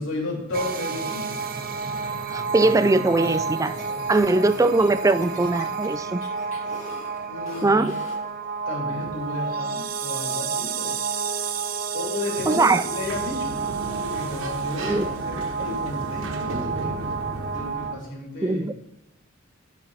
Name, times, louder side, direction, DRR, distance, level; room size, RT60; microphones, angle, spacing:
voice 1, 0.0-1.4 7.3-7.9 8.7-11.0 11.9-13.6 14.1-17.0 17.5-18.6, left 2 dB, 70° left, -3 dB, 3.0 m, -33 dB
sound 1, 0.5-17.9, right 5 dB, 45° right, 0.7 m, -30 dB
voice 2, 2.3-3.7 4.1-6.2 7.6-7.9 12.5-12.8 14.9-15.1 18.4-18.7, right 2 dB, 15° right, 13 dB, 0.3 m, -21 dB
sound 2, 2.4-8.3, left 2 dB, 40° left, 2.0 m, -44 dB
Sliding door, 12.7-18.0, right 1 dB, 75° right, 1.2 m, -34 dB
10.5 x 5.6 x 4.0 m, 0.92 s
head